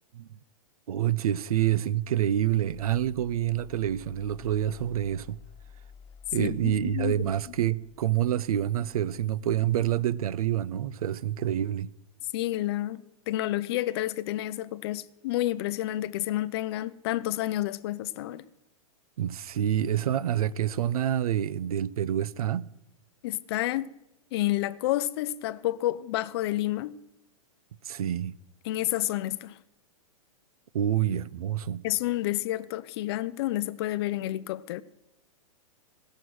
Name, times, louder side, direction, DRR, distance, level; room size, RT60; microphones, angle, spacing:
voice 1, 0.9-5.4 6.3-11.9 19.2-22.7 27.8-28.4 30.7-31.8, right 11 dB, 90° right, 0.5 m, -27 dB
sound 1, 2.7-10.8, left 8 dB, 30° left, 1.3 m, -52 dB
voice 2, 6.4-7.3 12.3-18.5 23.2-23.9 24.3-27.0 28.6-29.6 31.8-34.8, left 15 dB, 45° left, 0.5 m, -30 dB
16.5 x 6.5 x 6.2 m
hypercardioid pair, 150°, 18 cm